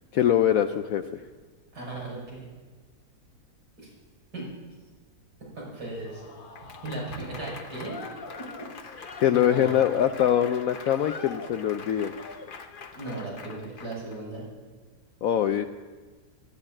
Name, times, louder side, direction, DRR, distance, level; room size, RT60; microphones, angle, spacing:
voice 1, 0.1-1.2 9.2-12.1 15.2-15.6, left 10 dB, 65° left, 8 dB, 0.9 m, -23 dB
voice 2, 1.7-2.5 4.3-4.5 5.5-6.2 6.8-8.0 8.4-8.5 9.2-9.8 12.9-14.4, right 2 dB, 75° right, -3 dB, 6.6 m, -36 dB
Applause / Crowd, 6.0-14.2, left 4 dB, 40° left, 0.9 m, -43 dB
12.0 x 12.0 x 8.7 m, 1.3 s
omnidirectional pair, 1.8 m